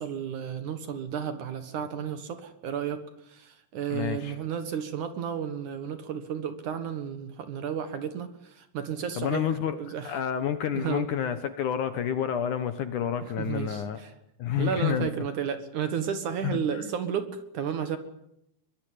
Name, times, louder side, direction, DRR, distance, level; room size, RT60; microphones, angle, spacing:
voice 1, 0.0-9.4 9.8-10.1 10.7-11.0 13.4-14.1 14.6-18.0, right 8 dB, 60° right, 10 dB, 2.6 m, -32 dB
voice 2, 3.9-4.4 9.2-9.8 10.0-14.0 14.4-15.1 16.4-16.9, left 9 dB, 65° left, 11 dB, 2.3 m, -29 dB
22.5 x 21.5 x 9.5 m, 0.79 s
omnidirectional pair, 4.6 m